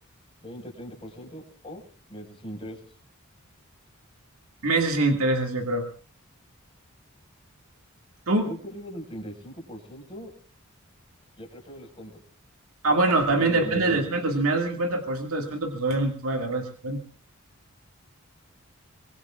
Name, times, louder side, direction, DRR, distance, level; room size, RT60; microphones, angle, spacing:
voice 1, 0.4-1.8 2.1-2.8 8.4-10.3 11.4-12.2 12.9-13.1 13.4-14.2, equal, 25° left, 0 dB, 5.4 m, -40 dB
voice 2, 4.6-5.8 8.3-8.5 12.8-17.0, right 2 dB, 75° right, 3 dB, 2.2 m, -24 dB
24.5 x 21.5 x 2.5 m, 0.40 s
head